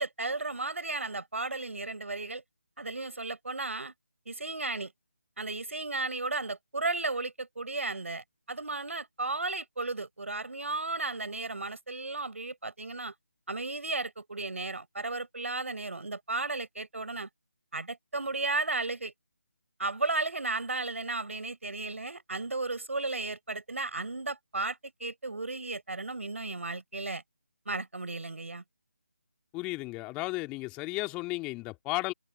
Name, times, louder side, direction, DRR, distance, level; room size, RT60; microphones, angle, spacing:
voice 1, 0.0-2.4 2.8-3.9 4.2-4.9 5.4-13.1 13.5-17.3 17.7-19.1 19.8-27.2 27.6-28.6, right 3 dB, 70° right, 5.0 m, -34 dB
voice 2, 29.5-32.1, left 22 dB, 15° left, 2.7 m, -34 dB
figure-of-eight pair, 155°, 7 cm